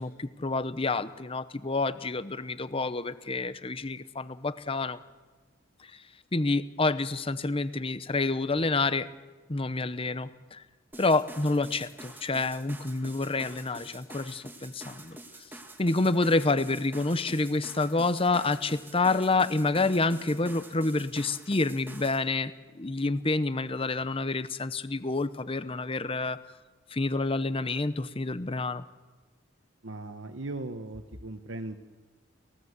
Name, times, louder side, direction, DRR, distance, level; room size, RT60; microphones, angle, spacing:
voice 1, 0.0-5.0 6.3-9.1 9.5-10.6 11.0-15.2 15.8-26.4 26.9-28.8, left 3 dB, 30° left, 14 dB, 0.8 m, -28 dB
sound 1, 10.9-22.2, right 1 dB, 10° right, 2.2 m, -47 dB
voice 2, 29.8-31.8, right 2 dB, 70° right, 6 dB, 1.2 m, -38 dB
29.0 x 16.5 x 8.1 m, 1.4 s
head